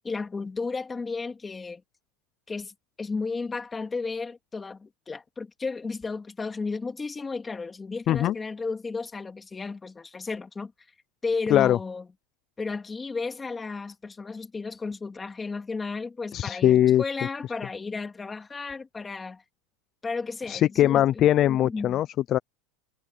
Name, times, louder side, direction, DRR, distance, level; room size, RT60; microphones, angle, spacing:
voice 1, 0.0-1.8 2.5-10.7 11.2-12.1 12.6-19.4 20.0-22.0, left 4 dB, 10° left, 3.2 m, -33 dB
voice 2, 16.3-17.0 20.5-22.4, left 12 dB, 30° left, 0.5 m, -21 dB
supercardioid pair, 160°, 0 cm